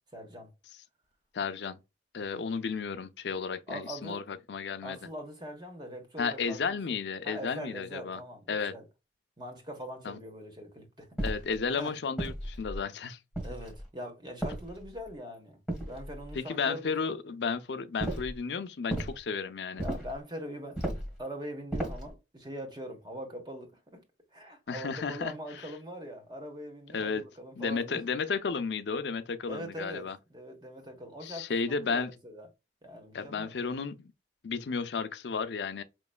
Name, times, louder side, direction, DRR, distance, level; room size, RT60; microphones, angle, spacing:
voice 1, 0.1-0.5 3.7-4.2 4.8-7.0 7.2-8.9 9.4-11.1 11.8-11.9 13.4-15.6 15.9-16.9 19.8-20.8 21.2-24.0 24.3-28.0 29.5-31.5 31.8-32.5 32.8-33.5, equal, 25° right, 1.1 m, -42 dB
voice 2, 1.3-1.8 2.1-5.0 6.2-8.2 8.5-8.7 10.0-10.2 11.2-13.2 16.3-19.8 24.7-25.7 26.9-27.2 27.6-30.2 31.2-32.1 33.1-34.1 34.4-35.8, left 5 dB, 80° left, 0.5 m, -33 dB
sound 1, 11.2-11.6 12.2-12.8 13.3-13.9 14.4-15.1 15.7-16.4 18.0-18.4 18.9-19.2 19.8-20.2 20.8-21.2 21.7-22.1, right 1 dB, 5° right, 1.4 m, -35 dB
5.1 x 3.0 x 2.2 m
head